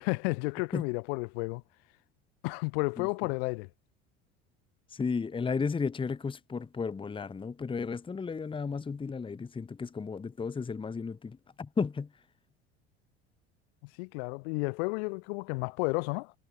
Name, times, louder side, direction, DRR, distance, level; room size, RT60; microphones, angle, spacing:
voice 1, 0.0-1.6 2.4-3.7 14.0-16.3, left 32 dB, 65° left, 1.1 m, -32 dB
voice 2, 4.9-12.1, left 5 dB, 15° left, 0.9 m, -34 dB
hypercardioid pair, 70°, 33 cm